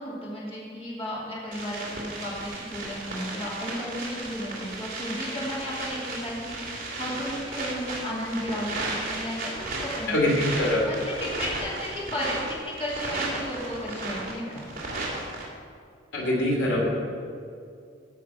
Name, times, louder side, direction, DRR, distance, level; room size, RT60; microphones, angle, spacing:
voice 1, 0.0-10.2 10.8-14.6, equal, 30° left, -6 dB, 2.8 m, -34 dB
sound 1, 1.5-15.4, right 2 dB, 45° right, 2.7 m, -34 dB
voice 2, 10.1-10.9 16.1-16.9, left 1 dB, 75° left, -3 dB, 2.7 m, -23 dB
15.0 x 5.9 x 6.0 m, 2.3 s
head